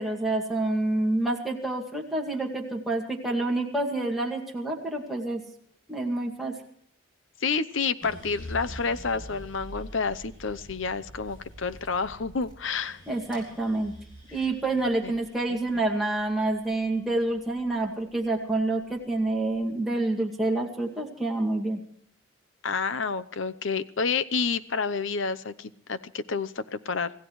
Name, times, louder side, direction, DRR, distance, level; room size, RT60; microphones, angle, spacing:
voice 1, 0.0-5.4 5.9-6.5 13.1-13.9 14.3-21.8, right 2 dB, ahead, -1 dB, 2.2 m, -28 dB
voice 2, 7.4-13.0 15.0-15.1 22.6-27.1, left 5 dB, 70° left, 14 dB, 0.8 m, -29 dB
sound 1, 8.0-18.2 18.7-19.4, equal, 20° left, 7.4 m, -45 dB
26.5 x 16.0 x 3.2 m, 0.63 s
head